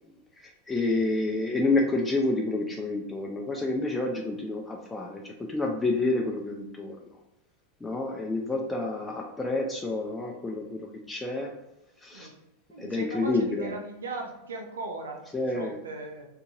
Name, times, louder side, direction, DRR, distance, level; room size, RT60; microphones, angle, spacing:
voice 1, 0.4-7.0 7.8-11.5 12.0-12.3 12.8-13.7 15.3-15.8, left 2 dB, 10° left, 0 dB, 0.4 m, -29 dB
voice 2, 12.7-15.2 15.5-16.2, right 3 dB, 80° right, 2 dB, 0.6 m, -38 dB
3.7 x 2.8 x 2.4 m, 0.91 s
hypercardioid pair, 95°, 0 cm